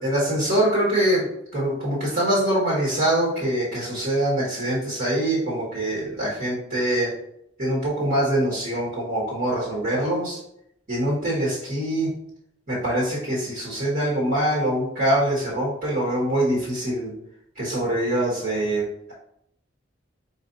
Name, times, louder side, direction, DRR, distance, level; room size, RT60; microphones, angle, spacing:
voice 1, 0.0-7.2 7.6-10.4 10.9-12.1 12.7-17.1 17.5-19.1, right 1 dB, 50° right, -7 dB, 1.6 m, -24 dB
4.6 x 4.3 x 2.7 m, 0.75 s
head